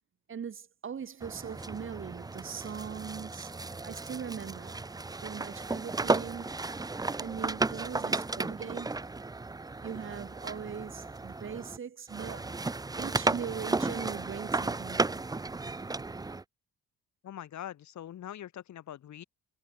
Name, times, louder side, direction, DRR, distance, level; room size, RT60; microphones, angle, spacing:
voice 1, 0.3-4.7 5.2-6.5 6.9-8.9 9.8-12.5 13.0-15.2, right 7 dB, 40° right, 1.6 m, -40 dB
Auto Rickshaw - Sitting in the Back Seat, 1.2-11.8 12.1-16.4, right 3 dB, 15° right, 0.6 m, -34 dB
voice 2, 17.2-19.2, left 11 dB, 70° left, 4.6 m, -43 dB
cardioid pair, 90°, 30 cm